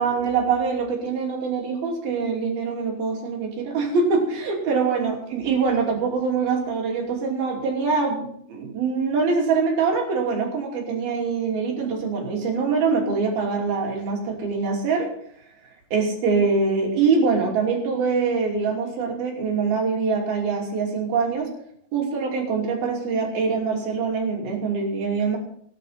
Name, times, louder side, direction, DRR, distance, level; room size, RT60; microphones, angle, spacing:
voice 1, 0.0-15.1 15.9-21.5 21.9-25.4, right 5 dB, 75° right, -1 dB, 4.9 m, -24 dB
17.5 x 10.5 x 4.3 m, 0.65 s
omnidirectional pair, 4.3 m